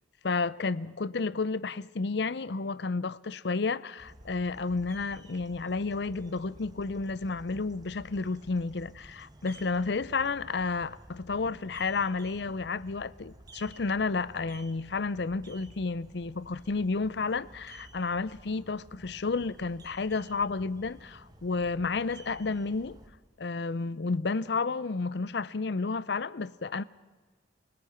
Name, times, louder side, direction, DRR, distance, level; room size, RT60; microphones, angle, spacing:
voice 1, 0.2-23.0 23.4-26.8, left 4 dB, 65° left, 0.6 m, -31 dB
sound 1, 4.0-23.1, right 1 dB, 20° right, 1.8 m, -52 dB
29.5 x 17.5 x 5.8 m
head